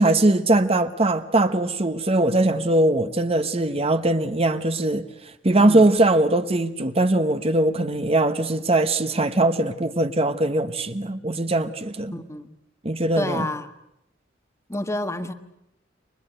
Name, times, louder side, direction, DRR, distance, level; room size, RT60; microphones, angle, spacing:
voice 1, 0.0-5.1 5.4-12.1 12.8-13.5, right 2 dB, 35° right, 1.2 m, -21 dB
voice 2, 12.1-12.5 13.2-13.7 14.7-15.3, left 1 dB, 15° left, 1.4 m, -29 dB
29.5 x 24.0 x 8.0 m
head